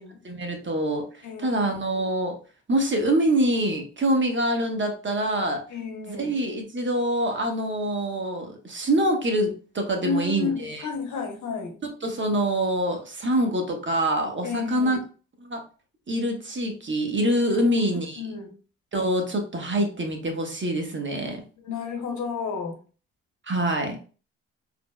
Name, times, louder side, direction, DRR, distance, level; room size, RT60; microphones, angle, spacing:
voice 1, 0.2-2.4 2.7-5.6 6.1-10.9 11.8-15.0 15.4-15.6 16.1-18.2 18.9-21.4 23.5-24.0, right 1 dB, 35° right, 1.3 m, -25 dB
voice 2, 1.2-1.6 5.7-6.3 10.0-11.8 14.4-15.0 17.5-17.8 18.2-18.6 21.6-22.8, left 4 dB, 65° left, 1.1 m, -31 dB
4.1 x 2.9 x 2.2 m
hypercardioid pair, 50°, 32 cm